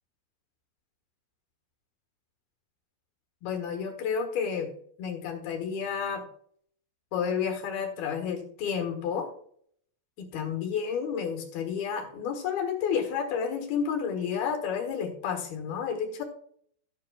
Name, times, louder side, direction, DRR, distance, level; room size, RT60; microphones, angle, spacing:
voice 1, 3.4-4.7 5.0-6.2 7.1-9.3 10.2-16.2, left 7 dB, 65° left, 5 dB, 3.1 m, -31 dB
13.5 x 9.6 x 2.4 m, 0.62 s
omnidirectional pair, 5.3 m